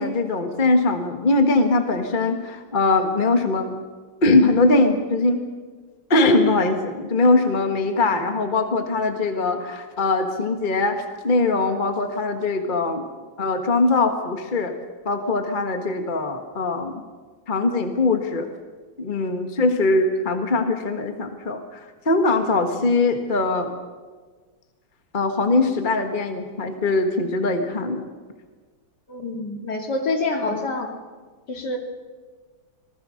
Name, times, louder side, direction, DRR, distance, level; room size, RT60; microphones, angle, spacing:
voice 1, 0.0-3.7 4.2-5.4 6.1-13.0 13.4-14.7 15.0-17.0 17.5-18.5 19.0-23.7 25.1-28.0, left 2 dB, 25° left, 6 dB, 1.5 m, -21 dB
voice 2, 29.1-30.9 31.5-31.8, left 2 dB, 55° left, 3 dB, 3.0 m, -26 dB
26.0 x 19.5 x 6.5 m, 1.4 s
omnidirectional pair, 2.2 m